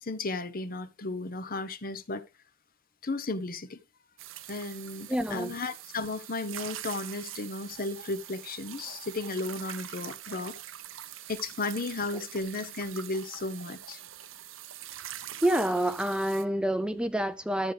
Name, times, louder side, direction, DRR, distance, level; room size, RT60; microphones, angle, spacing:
voice 1, 0.0-2.2 3.0-3.8 4.5-10.5 11.3-14.0, left 3 dB, 50° left, 1.0 m, -34 dB
sound 1, 4.2-16.4, right 11 dB, 90° right, 0.8 m, -44 dB
voice 2, 5.1-5.5 15.4-17.7, right 1 dB, 5° right, 0.5 m, -27 dB
13.0 x 7.8 x 3.4 m
head